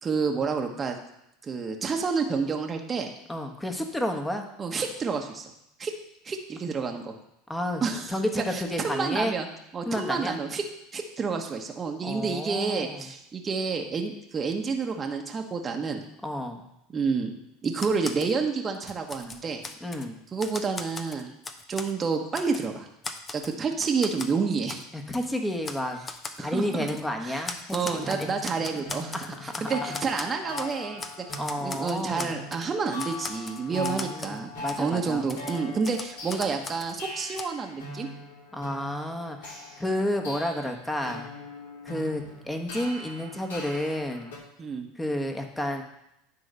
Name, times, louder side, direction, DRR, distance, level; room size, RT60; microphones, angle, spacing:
voice 1, 0.0-1.0 1.4-3.1 4.6-5.5 5.8-5.9 6.2-7.1 7.8-8.1 8.4-9.5 9.7-10.6 10.9-16.0 16.9-17.3 17.6-19.6 20.3-21.3 21.7-22.9 23.3-24.8 26.4-26.9 27.2-27.4 27.7-29.1 29.6-38.1 44.6-44.9, right 5 dB, 30° right, 3 dB, 1.1 m, -29 dB
voice 2, 3.3-4.5 7.5-7.8 8.1-9.4 9.8-10.4 12.0-13.1 16.2-16.6 19.8-20.2 24.9-26.0 26.4-28.3 29.1-30.0 31.4-32.3 33.7-35.3 38.5-41.3 41.8-44.3 44.9-45.8, left 1 dB, 10° left, 4 dB, 1.3 m, -31 dB
Typewriter, 17.7-18.3 18.7-20.1 20.4-21.9 22.3-22.7 23.0-24.3 24.7-24.8 25.1-25.3 25.6-25.8 26.1-26.4 26.9-27.0 27.4-29.7 29.9-30.7 31.0-32.7 33.0-34.4 34.7-34.8 35.3-36.9 37.4-37.5, left 3 dB, 25° left, 0.8 m, -38 dB
sound 1, 28.0-44.4, left 2 dB, 80° left, 2.8 m, -41 dB
9.9 x 3.9 x 6.7 m, 0.81 s
hypercardioid pair, 90°, 0 cm